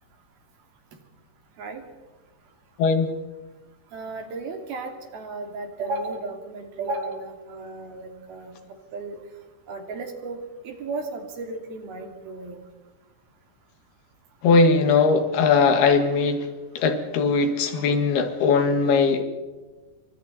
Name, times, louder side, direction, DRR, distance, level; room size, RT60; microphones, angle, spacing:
voice 1, 3.9-8.5 8.9-9.2 9.7-10.4 10.6-12.6, right 3 dB, 70° right, 4 dB, 4.5 m, -34 dB
voice 2, 14.4-16.4 16.8-19.2, left 4 dB, 80° left, 7 dB, 3.7 m, -19 dB
29.0 x 25.0 x 4.2 m, 1.3 s
omnidirectional pair, 4.5 m